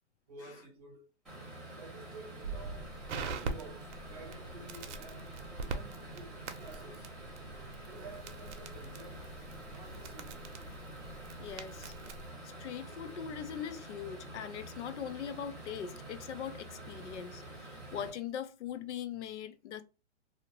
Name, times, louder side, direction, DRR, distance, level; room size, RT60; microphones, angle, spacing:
voice 1, 0.3-1.1 1.8-2.9 3.3-7.1 7.9-9.3 9.7-10.6, right 3 dB, 35° right, 0.6 m, -51 dB
sound 1, 1.2-18.1, right 1 dB, ahead, 0.9 m, -47 dB
Crackle, 2.4-12.3, right 4 dB, 90° right, 0.7 m, -43 dB
voice 2, 11.4-11.9 12.6-19.8, left 8 dB, 75° left, 0.5 m, -41 dB
2.7 x 2.0 x 2.8 m
hypercardioid pair, 180°, 35 cm